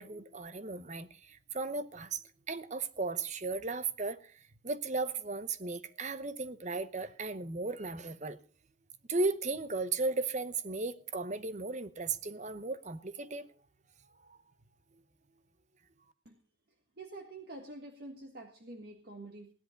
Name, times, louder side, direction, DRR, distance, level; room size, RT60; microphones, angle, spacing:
voice 1, 0.0-8.4 9.1-13.5 14.3-14.4, right 3 dB, 35° right, 0.8 m, -36 dB
voice 2, 17.0-19.5, right 2 dB, 55° right, 1.6 m, -47 dB
17.0 x 10.5 x 5.2 m
head